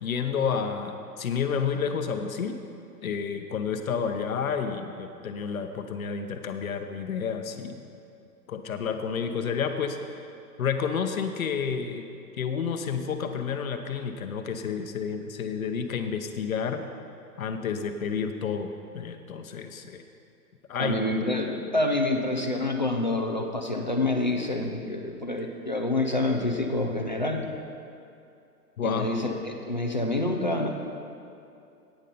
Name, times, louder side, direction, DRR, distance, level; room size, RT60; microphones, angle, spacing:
voice 1, 0.0-2.6 3.0-7.8 8.5-10.0 10.6-12.0 12.4-16.8 17.4-20.0 20.7-21.0 28.8-29.1, left 6 dB, 60° left, 6 dB, 0.9 m, -30 dB
voice 2, 20.8-27.4 28.8-30.7, left 2 dB, 30° left, 2 dB, 0.4 m, -27 dB
9.8 x 9.1 x 5.3 m, 2.6 s
hypercardioid pair, 175°, 47 cm